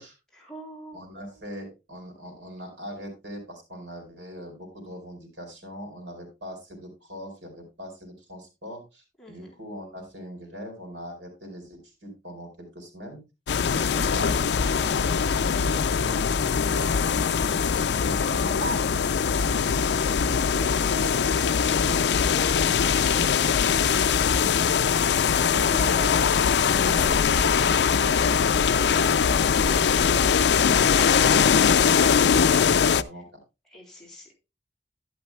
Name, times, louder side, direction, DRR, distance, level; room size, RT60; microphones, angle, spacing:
voice 1, 0.3-1.0 9.2-9.5 25.2-26.2 33.1-33.2 33.7-34.3, equal, 5° left, -3 dB, 3.6 m, -43 dB
voice 2, 0.9-13.2 13.7-16.4 16.7-19.8 20.4-24.6 25.5-26.2 26.7-30.2 30.7-33.4, equal, 85° right, 3 dB, 4.8 m, -41 dB
sound 1, 13.5-33.0, left 6 dB, 70° left, 0.4 m, -22 dB
Speech, 18.1-19.2 20.4-20.8 21.8-22.9 23.6-24.4 24.7-25.4 25.8-26.2 26.8-27.2 28.3-29.0 29.3-29.9 30.2-30.8 31.1-32.4, equal, 40° left, 1.3 m, -41 dB
11.5 x 11.5 x 2.3 m, 0.26 s
head